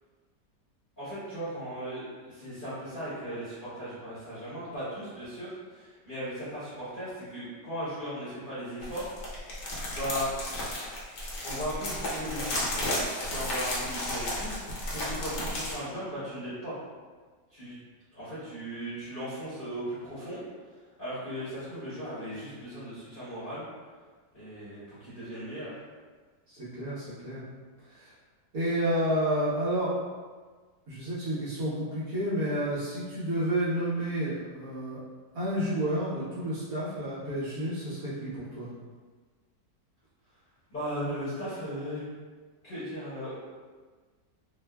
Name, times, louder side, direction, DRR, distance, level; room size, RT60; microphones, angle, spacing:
voice 1, 1.0-9.1 9.9-10.3 11.4-12.6 13.3-16.7 17.5-17.8 18.1-20.4 21.0-23.6 24.3-25.7 40.7-42.0 42.6-43.3, equal, 35° left, -13 dB, 0.9 m, -37 dB
sound 1, 8.8-15.7, left 1 dB, 65° left, 1.2 m, -33 dB
voice 2, 26.5-27.4 27.8-28.1 28.5-30.0 30.9-35.0 35.3-38.7, right 1 dB, 60° right, -11 dB, 1.3 m, -30 dB
3.3 x 2.1 x 2.2 m, 1.5 s
omnidirectional pair, 1.9 m